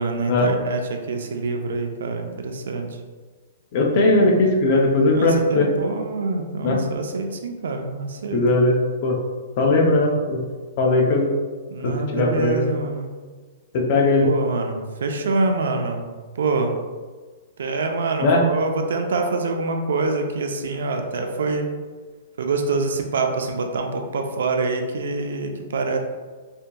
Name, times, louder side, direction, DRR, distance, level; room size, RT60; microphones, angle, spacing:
voice 1, 0.0-2.9 5.1-8.4 9.8-9.9 11.7-13.1 14.2-16.8 17.6-21.7 22.4-26.0, right 3 dB, 75° right, 4 dB, 0.5 m, -25 dB
voice 2, 3.7-5.7 6.6-6.8 8.3-8.8 9.0-9.2 9.6-10.4 10.8-11.3 11.8-12.7 13.7-14.3 18.2-18.5, left 2 dB, 30° left, 0 dB, 0.5 m, -18 dB
4.3 x 2.7 x 2.2 m, 1.4 s
hypercardioid pair, 180°, 0 cm